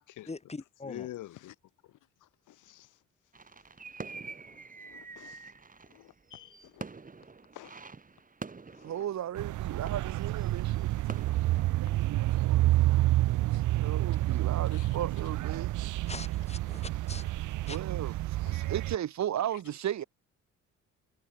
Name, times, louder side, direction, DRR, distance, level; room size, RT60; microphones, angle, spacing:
voice 1, 0.3-1.1 16.1-17.8, left 3 dB, 20° left, 3.2 m, -43 dB
voice 2, 0.8-1.5 2.5-2.9 4.8-5.4 5.9-6.8 7.5-7.8 8.7-8.9 11.2-11.4 13.8-13.9 14.7-14.9 18.4-18.6, left 15 dB, 85° left, 6.0 m, -47 dB
sound 1, 3.3-12.7 13.1-13.4, right 4 dB, 25° right, 4.3 m, -47 dB
voice 3, 8.8-11.0 11.8-15.7 17.7-20.0, right 11 dB, 65° right, 2.6 m, -36 dB
sound 2, 9.4-18.9, right 16 dB, 85° right, 1.1 m, -29 dB
cardioid pair, 90°, 30 cm